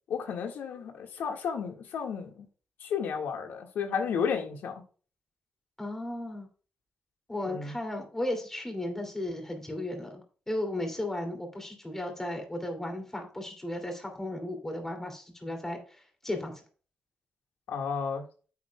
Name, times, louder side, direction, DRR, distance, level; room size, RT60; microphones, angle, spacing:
voice 1, 0.1-2.5 2.8-4.8 7.5-7.7 17.7-18.2, left 6 dB, 85° left, 1.7 m, -32 dB
voice 2, 5.8-6.5 7.3-10.2 10.5-16.5, left 1 dB, 15° left, 2.7 m, -35 dB
9.5 x 8.3 x 2.3 m
cardioid pair, 125°, 3 cm